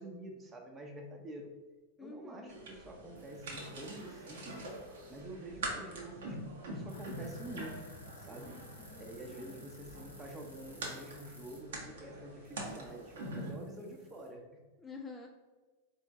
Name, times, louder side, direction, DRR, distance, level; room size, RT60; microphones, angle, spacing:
voice 1, 0.0-1.5 2.0-4.7 5.1-7.8 8.2-8.6 9.0-14.6, right 1 dB, 20° right, 2 dB, 0.7 m, -47 dB
voice 2, 2.0-2.6 8.5-9.0 9.3-9.6 14.8-15.3, left 4 dB, 15° left, 2 dB, 0.3 m, -49 dB
sound 1, 2.5-13.5, right 1 dB, 60° right, 0.9 m, -45 dB
sound 2, 3.2-5.2 6.9-11.6 12.4-14.3, right 1 dB, 85° right, 1.1 m, -58 dB
sound 3, 6.9-14.4, left 2 dB, 65° left, 0.6 m, -55 dB
4.2 x 3.0 x 3.4 m, 1.3 s
figure-of-eight pair, 90°, 0 cm